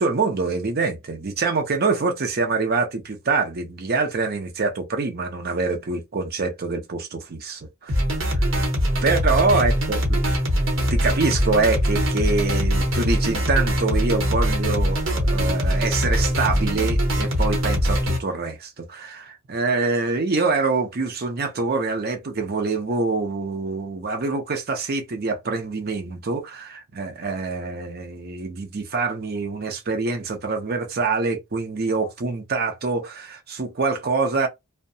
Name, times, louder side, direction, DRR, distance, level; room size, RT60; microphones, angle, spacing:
voice 1, 0.0-8.5 9.0-10.2 10.9-34.5, right 4 dB, 50° right, 0.6 m, -25 dB
sound 1, 7.9-18.2, equal, 65° right, 1.0 m, -22 dB
2.7 x 2.1 x 2.6 m
head